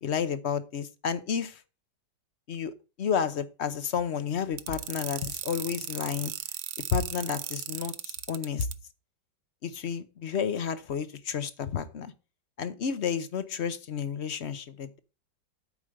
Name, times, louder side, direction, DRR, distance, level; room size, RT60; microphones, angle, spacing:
voice 1, 0.0-1.6 2.5-6.3 6.9-8.7 9.6-12.1 12.6-15.0, left 7 dB, 50° left, 0.8 m, -31 dB
sound 1, 4.6-8.7, right 12 dB, 65° right, 1.0 m, -36 dB
8.6 x 4.9 x 7.6 m
omnidirectional pair, 2.0 m